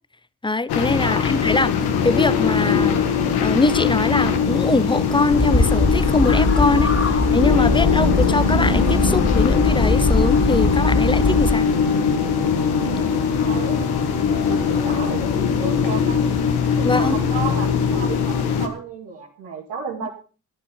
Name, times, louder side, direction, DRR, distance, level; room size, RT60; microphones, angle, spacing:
voice 1, 0.4-1.7 2.0-6.9 7.3-11.7 16.8-17.2 20.0-20.1, left 2 dB, 10° left, 0.8 m, -22 dB
sound 1, 0.7-18.7, left 6 dB, 80° left, 1.7 m, -21 dB
voice 2, 1.0-1.4 6.6-6.9 7.7-8.2 13.2-13.8 14.3-16.3 16.8-20.1, right 5 dB, 85° right, 2.6 m, -33 dB
sound 2, 5.3-11.5, left 2 dB, 40° left, 3.2 m, -21 dB
12.5 x 10.0 x 5.6 m
supercardioid pair, 45°, 39 cm